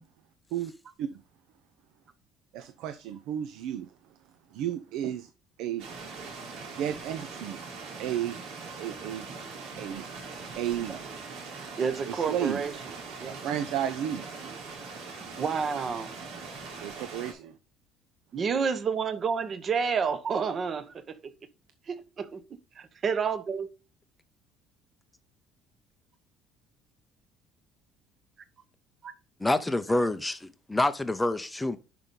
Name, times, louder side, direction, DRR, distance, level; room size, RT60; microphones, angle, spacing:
voice 1, 2.5-3.9 4.5-5.3 5.6-5.9 6.8-7.6 8.0-8.4 8.7-9.3 9.8-10.1 10.5-11.1 12.1-12.6 13.3-14.3 16.8-17.6, right 10 dB, 65° right, 0.7 m, -33 dB
sound 1, 5.8-17.3, right 4 dB, 90° right, 3.4 m, -41 dB
voice 2, 11.8-12.7 13.2-13.4 15.4-16.1 18.3-21.3 21.9-22.4 22.8-23.7 29.0-29.1, right 6 dB, 30° right, 0.8 m, -29 dB
voice 3, 29.4-31.8, left 2 dB, 5° left, 0.6 m, -27 dB
10.5 x 5.3 x 3.8 m
cardioid pair, 170°, 0 cm